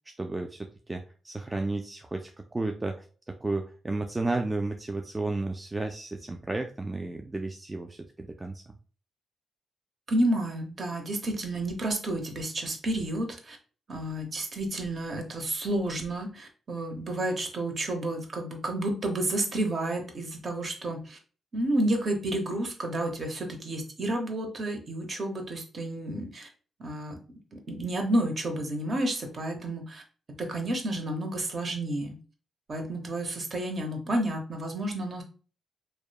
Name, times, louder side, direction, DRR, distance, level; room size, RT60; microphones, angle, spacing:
voice 1, 0.2-8.6, right 2 dB, 20° right, 4 dB, 0.3 m, -33 dB
voice 2, 10.1-13.6 13.9-21.2 21.5-26.5 26.8-27.2 27.5-30.0 30.4-32.2 32.7-35.2, right 1 dB, 50° right, 3 dB, 0.8 m, -30 dB
2.9 x 2.1 x 2.2 m, 0.39 s
cardioid pair, 65°, 0 cm